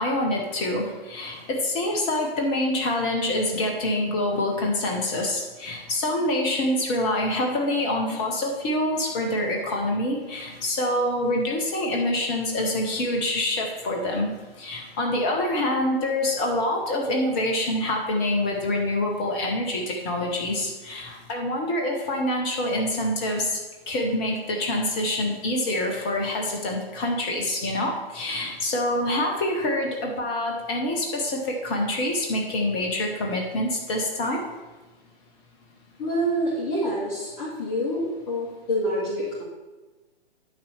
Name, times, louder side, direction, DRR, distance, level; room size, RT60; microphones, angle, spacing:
voice 1, 0.0-14.3 14.6-23.5 23.9-34.4, left 1 dB, 5° left, 1 dB, 0.3 m, -26 dB
voice 2, 36.0-39.4, equal, 25° left, -9 dB, 2.2 m, -27 dB
9.6 x 3.9 x 6.8 m, 1.2 s
figure-of-eight pair, 130°, 30 cm